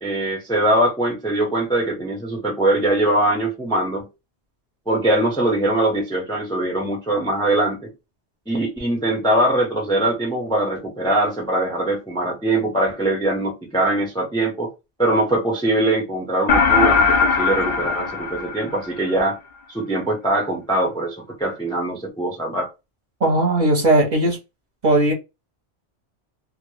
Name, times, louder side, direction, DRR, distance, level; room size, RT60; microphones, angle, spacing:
voice 1, 0.0-4.1 4.9-7.9 8.5-14.7 15.0-19.4 19.7-22.7, right 1 dB, 5° left, 0.4 m, -22 dB
sound 1, 16.5-19.1, left 5 dB, 55° left, 0.6 m, -19 dB
voice 2, 23.2-24.4 24.8-25.1, right 2 dB, 45° right, 0.7 m, -17 dB
2.1 x 2.0 x 3.1 m
omnidirectional pair, 1.2 m